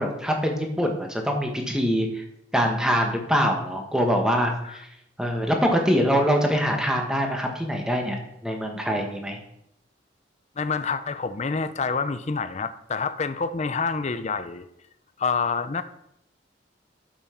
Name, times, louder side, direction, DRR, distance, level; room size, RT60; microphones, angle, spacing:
voice 1, 0.0-2.2 2.5-4.9 5.2-9.4, equal, 5° right, 2 dB, 1.5 m, -24 dB
voice 2, 10.6-14.7 15.2-15.8, left 5 dB, 35° left, 11 dB, 0.5 m, -27 dB
8.6 x 7.3 x 5.8 m, 0.78 s
head